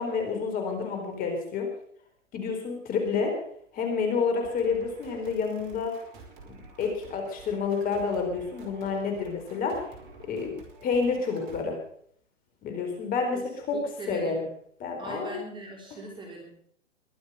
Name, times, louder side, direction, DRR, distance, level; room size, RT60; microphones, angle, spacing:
voice 1, 0.0-1.7 2.3-3.3 3.7-5.9 6.5-9.8 10.3-11.8 12.6-13.4 13.7-13.8 14.1-14.5 14.8-15.4, left 5 dB, 20° left, 4 dB, 4.3 m, -29 dB
sound 1, 4.4-11.6, right 3 dB, 40° right, 5.1 m, -49 dB
voice 2, 13.7-14.4 15.0-16.6, right 2 dB, 10° right, 1 dB, 3.2 m, -40 dB
22.5 x 7.8 x 6.8 m, 0.63 s
hypercardioid pair, 135°, 38 cm